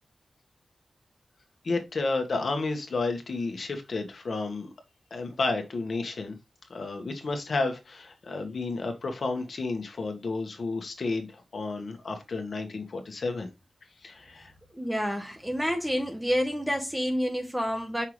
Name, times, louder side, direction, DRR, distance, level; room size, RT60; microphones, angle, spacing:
voice 1, 1.6-4.7 5.1-6.4 6.7-13.5 14.0-14.5, left 3 dB, 55° left, 1.4 m, -31 dB
voice 2, 14.8-18.1, equal, 5° right, 1.0 m, -28 dB
5.7 x 5.6 x 3.2 m
wide cardioid pair, 145°, 0 cm